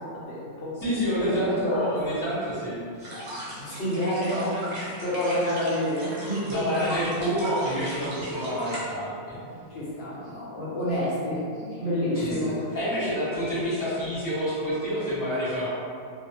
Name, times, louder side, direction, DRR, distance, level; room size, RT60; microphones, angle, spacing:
voice 1, 0.0-0.7 1.2-1.9 3.6-4.6 5.0-6.8 9.7-12.5, equal, 55° left, -8 dB, 0.8 m, -28 dB
voice 2, 0.8-3.1 6.5-10.0 12.1-15.7, equal, 15° left, -12 dB, 0.8 m, -28 dB
sound 1, 3.0-8.8, equal, 55° right, 0.9 m, -38 dB
2.7 x 2.0 x 2.8 m, 2.3 s
omnidirectional pair, 1.5 m